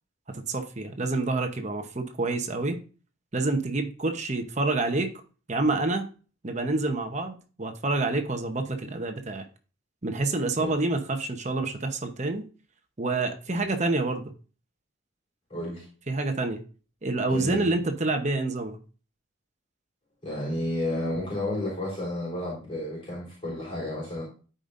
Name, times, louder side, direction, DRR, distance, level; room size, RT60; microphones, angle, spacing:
voice 1, 0.3-2.8 3.3-5.1 5.5-6.1 6.4-9.4 10.0-12.4 13.0-14.3 16.1-16.6 17.0-18.8, right 2 dB, 35° right, 5 dB, 0.9 m, -28 dB
voice 2, 15.5-15.9 17.3-17.7 20.2-24.2, left 1 dB, 25° left, -6 dB, 4.2 m, -31 dB
13.0 x 5.2 x 2.6 m, 0.37 s
head